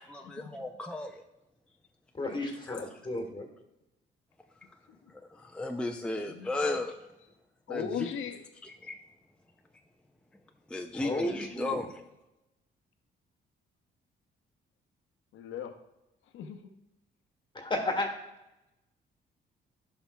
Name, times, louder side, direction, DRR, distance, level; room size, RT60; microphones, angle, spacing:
voice 1, 0.1-1.2 2.7-2.9 5.1-7.0 7.7-7.8 8.8-9.0 10.7-12.0, left 2 dB, 5° left, 4 dB, 0.5 m, -35 dB
voice 2, 2.1-3.4 10.9-11.8 17.5-18.1, left 1 dB, 25° left, 3 dB, 1.4 m, -33 dB
voice 3, 6.1-6.8 7.2-7.3 7.7-8.4 15.3-15.8 16.2-16.6, left 7 dB, 80° left, 7 dB, 0.8 m, -39 dB
11.5 x 5.6 x 2.3 m, 0.95 s
cardioid pair, 90°, 20 cm